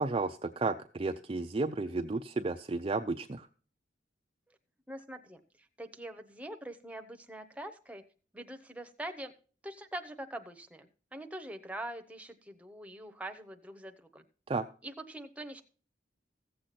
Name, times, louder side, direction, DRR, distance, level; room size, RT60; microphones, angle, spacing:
voice 1, 0.0-3.5 14.5-14.6, right 3 dB, 30° right, 6 dB, 0.5 m, -32 dB
voice 2, 4.9-5.4 5.8-8.0 8.3-9.3 9.6-14.2 14.8-15.6, right 1 dB, 10° right, 5 dB, 0.9 m, -43 dB
15.0 x 7.7 x 4.2 m, 0.40 s
head